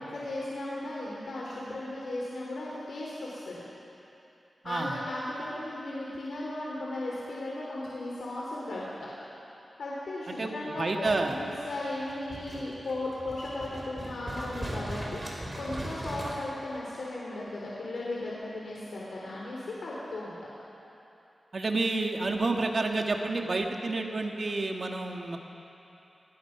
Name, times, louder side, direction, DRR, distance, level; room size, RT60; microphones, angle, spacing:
voice 1, 0.0-3.6 4.6-8.8 9.8-20.5, left 2 dB, 85° left, -5 dB, 3.6 m, -36 dB
voice 2, 4.6-5.0 10.3-11.3 21.5-25.4, right 3 dB, 45° right, 2 dB, 1.7 m, -29 dB
sound 1, 11.1-16.4, right 1 dB, 20° right, 4.4 m, -39 dB
25.0 x 20.0 x 6.0 m, 2.9 s
wide cardioid pair, 130°, 0 cm